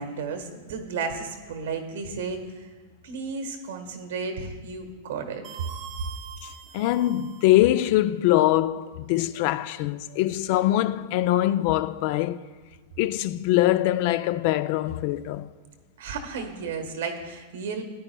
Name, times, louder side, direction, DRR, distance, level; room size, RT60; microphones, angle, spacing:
voice 1, 0.0-2.7 3.0-5.5 16.0-17.8, right 4 dB, 80° right, 1.3 m, -33 dB
sound 1, 5.4-7.8, right 8 dB, 45° right, 0.7 m, -43 dB
voice 2, 6.4-12.5 13.0-15.5, left 14 dB, 55° left, 0.3 m, -23 dB
13.5 x 9.7 x 2.2 m
hypercardioid pair, 125°, 0 cm